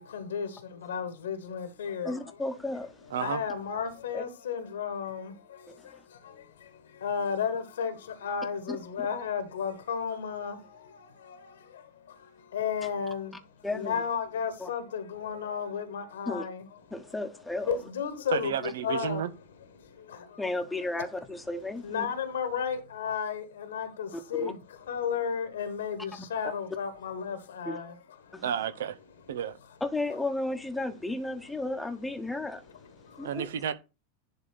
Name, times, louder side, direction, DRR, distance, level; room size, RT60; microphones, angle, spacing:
voice 1, 0.0-2.3 3.0-19.3 19.7-20.9 21.8-28.4 31.4-31.5 32.3-32.4 32.8-33.5, left 7 dB, 65° left, 1.4 m, -34 dB
voice 2, 2.0-2.9 4.1-4.2 5.9-6.0 8.7-8.8 13.6-13.9 14.6-14.7 16.3-16.4 16.9-17.8 20.4-22.1 24.1-24.5 27.7-27.8 28.3-28.5 29.8-32.6 33.2-33.5, left 2 dB, 5° left, 1.2 m, -33 dB
voice 3, 3.1-3.4 18.3-19.3 28.4-29.0 29.3-29.6 33.2-33.7, right 9 dB, 60° right, 0.7 m, -31 dB
11.0 x 3.7 x 5.7 m
figure-of-eight pair, 90°, 0 cm